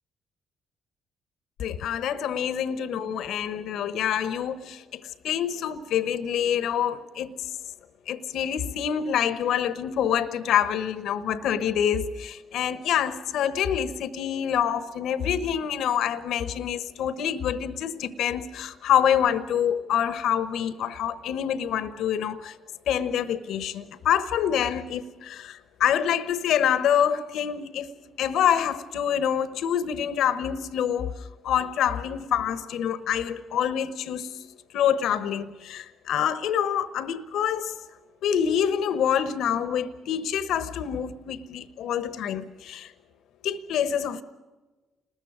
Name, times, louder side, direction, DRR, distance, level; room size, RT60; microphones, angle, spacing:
voice 1, 1.6-7.4 8.1-22.5 22.9-27.9 28.2-34.5 34.7-37.8 38.2-42.9 43.4-44.2, left 9 dB, 70° left, 1.1 m, -26 dB
30.0 x 20.5 x 5.0 m
hypercardioid pair, 45°, 0 cm